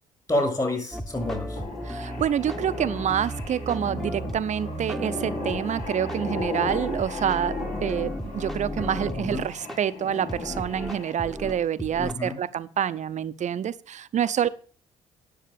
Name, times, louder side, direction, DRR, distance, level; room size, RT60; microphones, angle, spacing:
voice 1, 0.3-1.6 9.1-9.5 12.0-12.4, left 1 dB, 25° left, 3 dB, 7.2 m, -28 dB
sound 1, 0.9-9.8 10.3-12.1, equal, ahead, 1.4 m, -35 dB
sound 2, 1.6-11.5, left 3 dB, 55° left, 2.1 m, -36 dB
voice 2, 1.8-14.5, right 9 dB, 50° right, 14 dB, 0.8 m, -27 dB
10.0 x 7.0 x 6.9 m, 0.42 s
hypercardioid pair, 50°, 16 cm